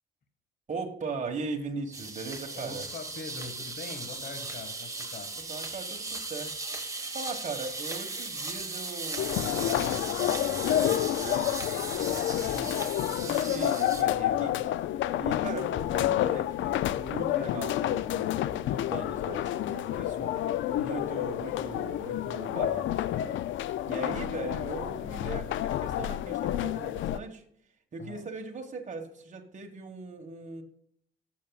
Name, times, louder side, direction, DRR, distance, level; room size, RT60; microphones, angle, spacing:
voice 1, 0.7-2.9 5.5-6.6 7.0-12.8 13.2-14.7 15.2-20.3 20.7-23.4 23.9-27.4 27.9-30.6, right 4 dB, 40° right, 3 dB, 1.6 m, -39 dB
sound 1, 1.9-14.0, right 3 dB, 15° right, 1.5 m, -37 dB
voice 2, 2.5-5.3 12.4-12.8 20.0-20.3 28.0-28.2, left 4 dB, 55° left, 6 dB, 1.8 m, -43 dB
sound 2, 9.2-27.2, left 12 dB, 75° left, 0.5 m, -29 dB
14.0 x 7.1 x 2.4 m, 0.69 s
cardioid pair, 90°, 20 cm